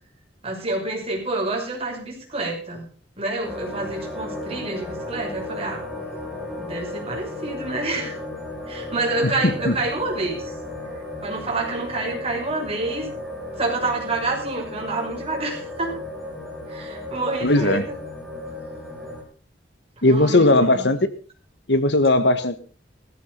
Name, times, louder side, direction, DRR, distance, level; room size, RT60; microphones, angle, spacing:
voice 1, 0.4-2.9 3.2-5.8 6.6-8.2 8.7-10.5 11.2-13.1 13.6-15.9 16.7-17.9 20.0-20.8, right 2 dB, 35° right, 0 dB, 6.1 m, -28 dB
sound 1, 3.4-19.2, left 2 dB, ahead, 6.4 m, -35 dB
voice 2, 9.2-9.7 17.4-17.8 20.0-21.0 21.7-22.6, left 2 dB, 70° left, 11 dB, 1.6 m, -18 dB
17.0 x 14.5 x 4.0 m, 0.37 s
head